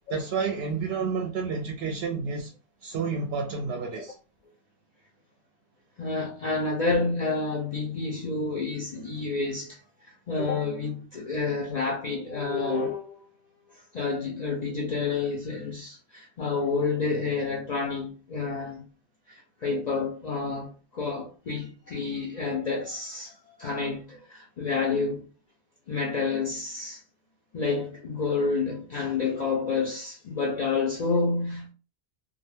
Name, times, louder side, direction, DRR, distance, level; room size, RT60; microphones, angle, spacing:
voice 1, 0.1-2.5 2.8-4.2, right 5 dB, 70° right, 0.7 m, -30 dB
voice 2, 6.0-9.8 10.3-13.3 13.7-18.8 19.3-25.3 25.9-27.0 27.5-31.7, left 4 dB, 50° left, 0.5 m, -29 dB
2.3 x 2.1 x 3.1 m
omnidirectional pair, 1.1 m